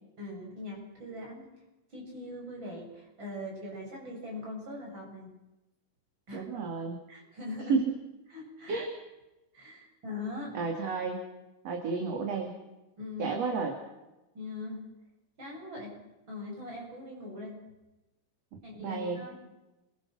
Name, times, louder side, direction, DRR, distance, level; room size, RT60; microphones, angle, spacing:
voice 1, 0.2-1.5 1.9-5.3 6.3-6.4 7.1-7.8 8.3-8.8 9.5-10.5 13.0-13.4 14.3-14.8 15.4-16.0 16.3-17.6 18.6-19.3, left 2 dB, 35° right, -2 dB, 8.5 m, -41 dB
voice 2, 6.3-7.0 7.7-7.9 8.7-8.9 10.5-11.2 11.6-12.5 13.2-13.8 18.8-19.2, right 4 dB, 55° right, 3 dB, 3.6 m, -31 dB
28.5 x 23.0 x 6.3 m, 1.0 s
omnidirectional pair, 3.6 m